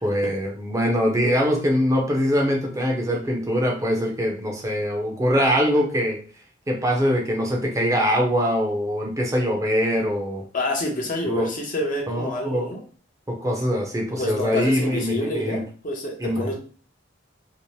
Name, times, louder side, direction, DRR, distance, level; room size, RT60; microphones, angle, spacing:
voice 1, 0.0-6.2 6.7-10.4 11.2-11.5 12.1-12.7 13.3-15.6 16.2-16.5, equal, 15° right, 0 dB, 0.5 m, -23 dB
voice 2, 10.5-12.8 14.2-16.5, left 1 dB, 45° left, 0 dB, 0.7 m, -28 dB
2.7 x 2.0 x 3.0 m, 0.39 s
head